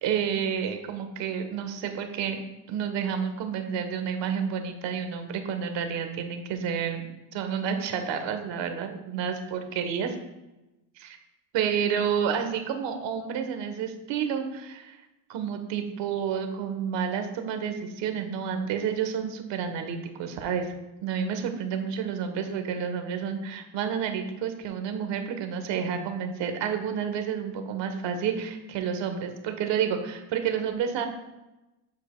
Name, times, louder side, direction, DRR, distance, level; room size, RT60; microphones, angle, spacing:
voice 1, 0.0-2.4 2.7-7.1 7.3-10.2 11.0-11.2 11.5-15.0 15.3-20.7 21.0-31.1, right 7 dB, 65° right, 6 dB, 1.2 m, -30 dB
7.8 x 7.3 x 2.2 m, 1.0 s
cardioid pair, 110°, 49 cm